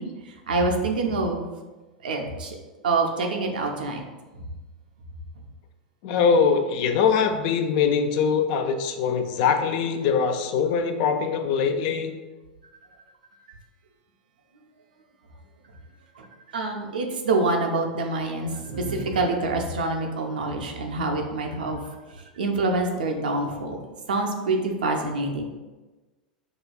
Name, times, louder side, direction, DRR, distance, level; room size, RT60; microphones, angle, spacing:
voice 1, 0.0-1.5 2.0-2.6 2.8-4.0 4.3-4.4 16.2-16.3 16.5-21.8 22.4-23.8 24.1-25.4, right 3 dB, 80° right, 2 dB, 0.5 m, -26 dB
voice 2, 6.0-12.1, left 6 dB, 55° left, 6 dB, 0.4 m, -22 dB
4.9 x 2.3 x 2.2 m, 1.2 s
hypercardioid pair, 90°, 5 cm